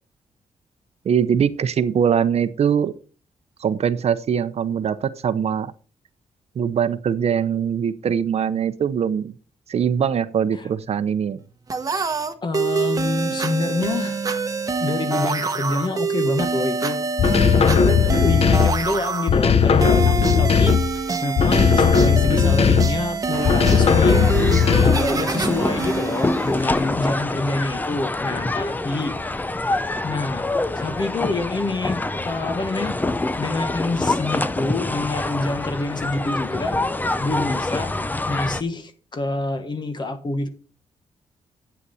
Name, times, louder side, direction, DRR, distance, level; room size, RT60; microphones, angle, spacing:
voice 1, 1.0-2.9 3.6-5.7 6.6-9.3 9.7-11.4, right 8 dB, 55° right, 0.8 m, -22 dB
sound 1, 11.7-27.2, right 5 dB, 30° right, 1.1 m, -26 dB
voice 2, 12.4-14.2 14.8-17.0 17.4-24.3 24.8-29.2 30.0-30.5 30.7-33.1 33.4-36.9 37.2-37.9 38.3-40.5, left 2 dB, 35° left, 1.4 m, -27 dB
sound 2, 17.2-18.9 19.3-21.0 21.4-23.1 23.4-25.2, left 7 dB, 50° left, 0.8 m, -17 dB
sound 3, 23.3-38.6, left 2 dB, 15° left, 0.5 m, -26 dB
11.0 x 8.3 x 4.2 m
wide cardioid pair, 135°, 13 cm